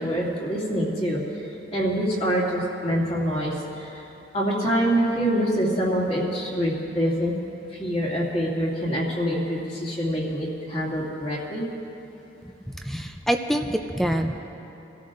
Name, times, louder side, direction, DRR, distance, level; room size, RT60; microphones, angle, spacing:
voice 1, 0.0-1.5 1.7-4.0 4.3-7.3 7.7-11.7, equal, 35° left, -5 dB, 2.4 m, -25 dB
voice 2, 12.9-14.4, equal, ahead, 5 dB, 0.4 m, -25 dB
23.5 x 13.0 x 2.5 m, 2.9 s
head